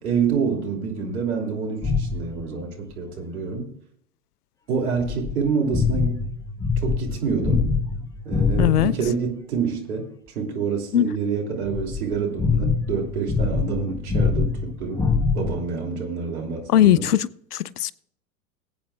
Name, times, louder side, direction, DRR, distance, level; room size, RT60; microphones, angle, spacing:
voice 1, 0.0-3.7 4.7-6.2 6.8-7.7 8.2-15.1 15.3-17.1, right 5 dB, 70° right, 3.1 m, -27 dB
sound 1, 1.8-2.4 5.0-9.1 11.6-15.6, left 4 dB, 10° left, 0.5 m, -24 dB
voice 2, 8.6-8.9 10.9-11.1 16.7-17.9, left 11 dB, 75° left, 0.6 m, -19 dB
20.0 x 8.7 x 2.4 m
figure-of-eight pair, 95°, 46 cm